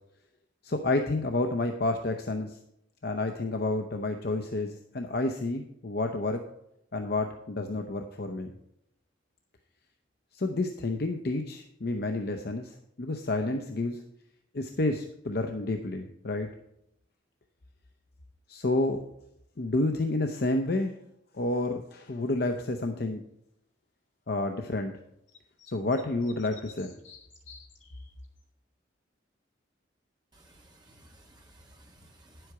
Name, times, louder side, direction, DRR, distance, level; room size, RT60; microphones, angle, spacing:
voice 1, 0.6-2.6 3.0-6.4 6.9-8.5 10.3-14.0 14.5-16.5 18.5-19.0 19.6-21.0 21.3-23.2 24.3-24.9 25.7-26.9, left 2 dB, 55° left, 5 dB, 0.7 m, -30 dB
sound 1, 25.3-28.4, left 6 dB, 75° left, 2.2 m, -52 dB
voice 2, 30.3-32.5, right 1 dB, 20° right, 0 dB, 1.8 m, -56 dB
10.0 x 7.8 x 4.7 m, 0.80 s
head